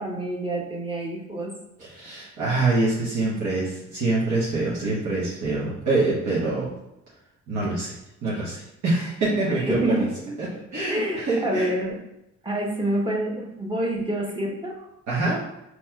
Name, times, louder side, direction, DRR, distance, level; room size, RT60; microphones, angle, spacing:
voice 1, 0.0-1.5 9.3-10.1 10.8-11.2 11.4-12.0 12.4-14.9, right 1 dB, 15° right, -2 dB, 1.0 m, -27 dB
voice 2, 1.8-6.7 7.5-8.0 8.2-10.0 10.4-10.5 10.7-11.7 15.1-15.4, right 2 dB, 70° right, -8 dB, 1.2 m, -25 dB
4.1 x 3.0 x 2.3 m, 0.88 s
cardioid pair, 90°, 30 cm